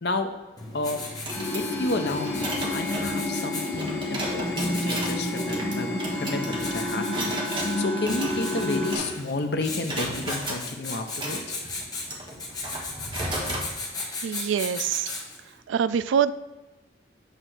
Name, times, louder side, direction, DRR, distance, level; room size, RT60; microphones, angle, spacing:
Writing, 0.6-15.5, left 3 dB, 20° left, 1.2 m, -37 dB
sound 1, 1.1-9.3 9.6-10.6 11.1-13.7, right 1 dB, 25° right, 1.1 m, -35 dB
sound 2, 1.3-9.0, left 1 dB, 35° left, 2.3 m, -30 dB
voice 1, 1.5-7.4 7.8-11.5, left 2 dB, 60° left, 6 dB, 0.7 m, -31 dB
voice 2, 14.2-15.1 15.7-16.3, right 8 dB, 85° right, 15 dB, 0.3 m, -24 dB
8.1 x 3.3 x 6.1 m, 1.2 s
head